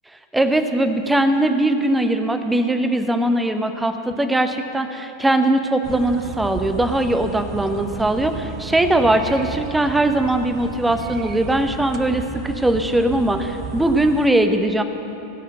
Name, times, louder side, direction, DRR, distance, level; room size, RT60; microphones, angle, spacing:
voice 1, 0.3-8.3 8.6-14.8, right 1 dB, 5° right, 7 dB, 0.8 m, -20 dB
sound 1, 5.8-14.3, right 7 dB, 30° right, 0.5 m, -34 dB
17.0 x 6.6 x 7.8 m, 2.9 s
figure-of-eight pair, 90°, 0 cm